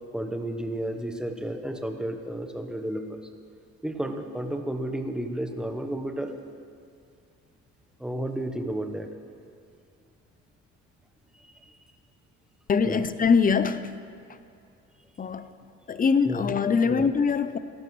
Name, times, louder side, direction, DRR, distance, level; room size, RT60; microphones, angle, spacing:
voice 1, 0.1-3.2 3.8-6.3 8.0-9.1 11.3-11.8 12.8-13.0 16.2-16.5 16.9-17.1, right 1 dB, ahead, 5 dB, 1.0 m, -32 dB
voice 2, 12.7-13.9 15.2-15.5 15.9-17.6, left 5 dB, 30° left, 12 dB, 0.6 m, -23 dB
17.0 x 12.0 x 3.2 m, 2.3 s
cardioid pair, 90°, 30 cm